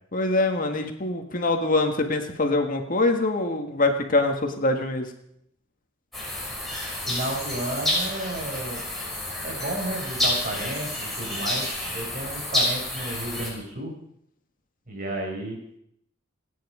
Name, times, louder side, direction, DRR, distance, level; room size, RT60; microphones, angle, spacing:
voice 1, 0.1-5.1, left 2 dB, 45° left, 4 dB, 1.8 m, -24 dB
sound 1, 6.1-13.5, left 1 dB, ahead, 6.6 m, -29 dB
voice 2, 7.1-8.9 9.4-13.9 14.9-15.6, right 1 dB, 45° right, 0 dB, 5.9 m, -32 dB
27.0 x 9.8 x 5.0 m, 0.73 s
head